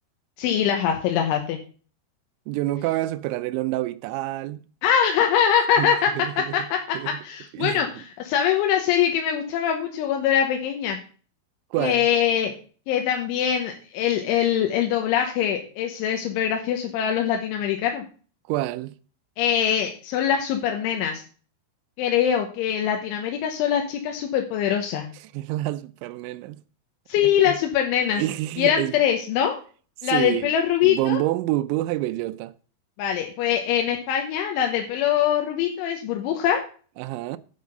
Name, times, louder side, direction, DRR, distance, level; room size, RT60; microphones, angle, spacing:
voice 1, 0.4-1.6 4.8-6.1 6.5-11.0 11.8-12.5 12.9-18.0 19.4-21.2 22.0-25.1 27.1-28.2 28.6-29.6 30.0-31.2 33.0-36.6, left 9 dB, 90° left, 3.5 m, -23 dB
voice 2, 2.5-4.7 5.8-6.7 6.9-7.2 7.5-7.8 11.7-12.1 18.5-18.9 25.3-26.6 27.2-27.6 28.2-28.9 30.1-30.5 30.8-32.5 37.0-37.4, right 16 dB, 85° right, 2.9 m, -27 dB
9.4 x 5.8 x 6.5 m
omnidirectional pair, 5.3 m